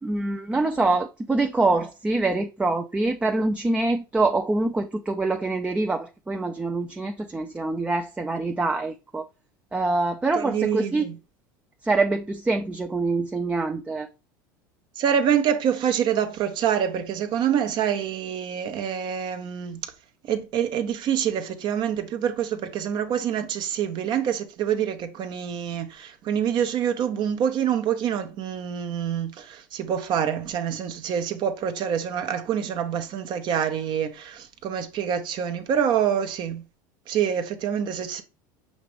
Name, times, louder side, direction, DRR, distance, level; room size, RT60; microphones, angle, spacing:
voice 1, 0.0-9.2 9.7-11.0 11.8-14.1, right 3 dB, 10° right, 0.4 m, -25 dB
voice 2, 10.3-11.2 15.0-19.8 20.3-36.6 37.1-38.2, right 8 dB, 45° right, 0.7 m, -26 dB
6.1 x 2.5 x 3.2 m
hypercardioid pair, 90°, 10 cm